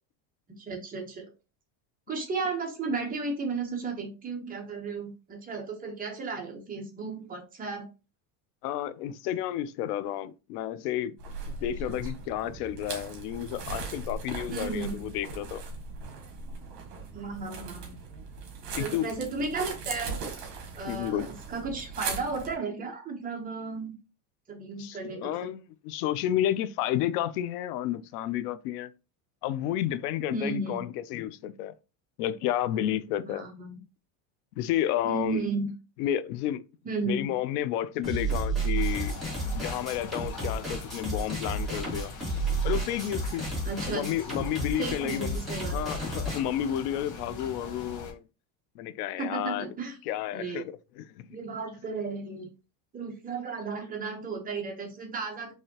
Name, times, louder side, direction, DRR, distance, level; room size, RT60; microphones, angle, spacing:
voice 1, 0.6-1.3 2.1-7.9 11.9-12.0 14.5-15.0 17.1-18.0 18.7-20.2 20.8-23.9 24.5-25.5 30.3-30.9 33.2-33.8 35.0-35.7 36.8-37.3 43.6-44.1 44.8-46.0 49.2-50.0 50.3-50.7 51.3-52.5 52.9-55.5, right 4 dB, 20° right, 0.9 m, -34 dB
voice 2, 8.6-11.1 11.4-15.6 18.7-19.1 20.9-21.3 24.8-28.9 29.4-31.7 32.2-33.5 34.6-35.5 36.0-36.6 37.1-39.2 39.5-42.1 42.6-43.5 43.9-45.4 45.7-48.2 48.8-49.7 50.1-51.3, left 11 dB, 85° left, 0.6 m, -31 dB
sound 1, 11.2-22.6, right 4 dB, 55° right, 1.7 m, -39 dB
sound 2, 38.0-46.4, right 2 dB, ahead, 1.8 m, -31 dB
sound 3, 38.7-48.1, left 3 dB, 40° left, 1.2 m, -42 dB
4.8 x 2.8 x 2.8 m
cardioid pair, 150°, 45 cm